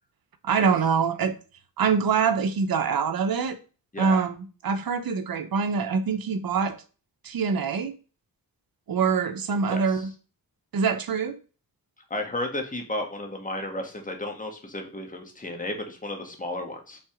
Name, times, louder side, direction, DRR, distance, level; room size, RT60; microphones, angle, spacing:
voice 1, 0.4-1.3 1.8-3.6 4.0-6.8 7.2-7.9 8.9-10.1 10.7-11.4, right 5 dB, 70° right, 8 dB, 1.0 m, -24 dB
voice 2, 9.7-10.0 12.1-17.0, left 1 dB, 20° left, 3 dB, 1.8 m, -33 dB
6.1 x 4.0 x 5.0 m, 0.35 s
cardioid pair, 85°, 37 cm